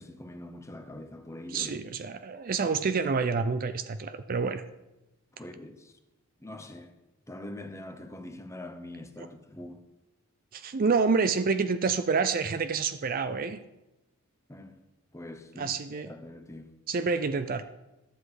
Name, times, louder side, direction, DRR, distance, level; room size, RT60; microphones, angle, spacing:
voice 1, 0.0-1.8 5.3-5.9 6.4-6.9 7.3-9.8 14.5-14.7 15.1-16.7, left 1 dB, 15° left, 0.7 m, -43 dB
voice 2, 1.5-4.6 9.2-9.3 10.5-13.6 15.6-16.1 16.9-17.6, right 4 dB, 40° right, 0.4 m, -28 dB
11.5 x 7.9 x 4.8 m
head